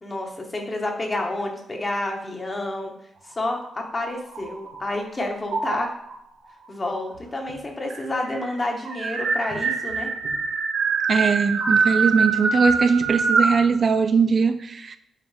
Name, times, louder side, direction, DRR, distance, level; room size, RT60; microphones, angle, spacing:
voice 1, 0.0-2.9 3.2-5.9 6.7-10.1, left 2 dB, 35° left, 1 dB, 1.6 m, -29 dB
sound 1, 3.5-5.0 5.5-6.1 7.1-7.2 7.5-7.6 7.9-13.7, right 4 dB, 90° right, 1.0 m, -24 dB
voice 2, 11.1-15.0, right 5 dB, 50° right, 10 dB, 0.4 m, -20 dB
8.3 x 3.6 x 3.5 m, 0.75 s
cardioid pair, 75°, 0 cm